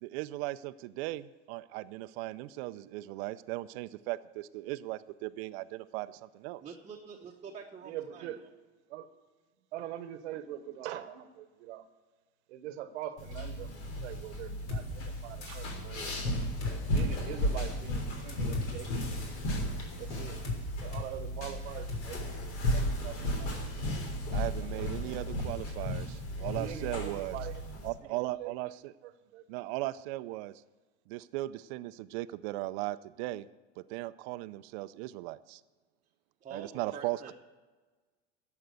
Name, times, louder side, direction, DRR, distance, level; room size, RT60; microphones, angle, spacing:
voice 1, 0.0-6.6 24.3-27.4 27.8-28.9 29.5-30.6 31.1-33.5 33.8-35.6 36.5-37.3, right 18 dB, 65° right, 13 dB, 0.5 m, -37 dB
voice 2, 6.6-8.3 36.4-37.3, right 6 dB, 20° right, 0 dB, 1.1 m, -46 dB
voice 3, 7.8-8.4 8.9-9.1 9.7-11.9 12.5-16.1 16.9-19.0 20.0-20.5 20.8-22.4 22.7-23.7 24.6-25.2 26.4-28.5 29.0-29.4, right 11 dB, 90° right, 11 dB, 1.1 m, -43 dB
sound 1, 13.2-27.9, equal, 75° left, 3.4 m, -35 dB
sound 2, 14.7-14.8 15.4-15.8 16.6-17.1 17.6-17.7 18.3-18.7 19.0-19.6 20.4-20.6 20.9-21.1 21.4-21.5 21.9-22.2, left 3 dB, 55° left, 3.8 m, -37 dB
11.5 x 7.5 x 8.0 m, 1.3 s
supercardioid pair, 130°, 34 cm